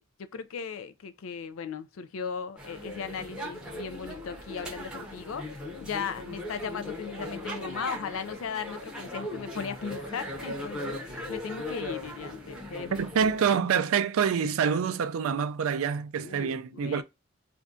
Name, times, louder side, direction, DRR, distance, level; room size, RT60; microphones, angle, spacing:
voice 1, 0.2-5.5 5.8-13.0 16.2-17.0, left 6 dB, 75° left, 0.4 m, -37 dB
sound 1, 2.6-13.4, left 1 dB, 5° right, 0.7 m, -38 dB
voice 2, 12.9-17.0, right 7 dB, 80° right, 0.4 m, -26 dB
2.6 x 2.2 x 3.6 m
head